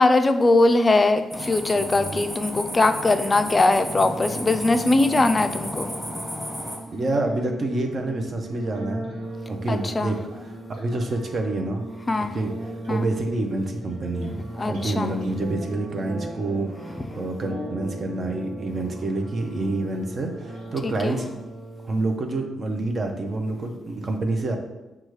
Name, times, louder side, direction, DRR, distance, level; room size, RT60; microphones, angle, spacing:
voice 1, 0.0-5.9 9.7-10.2 12.1-12.4 12.9-13.1 14.6-15.1 20.8-21.1, left 2 dB, 30° left, 9 dB, 0.3 m, -21 dB
sound 1, 1.3-6.8, equal, 5° right, 1.3 m, -33 dB
sound 2, 3.8-22.8, right 1 dB, 90° right, 1.0 m, -37 dB
voice 2, 6.9-9.1 9.5-11.8 12.2-14.4 14.7-21.3 21.9-24.6, right 2 dB, 45° right, 4 dB, 0.6 m, -28 dB
6.1 x 2.3 x 3.1 m, 1.0 s
cardioid pair, 70°, 0 cm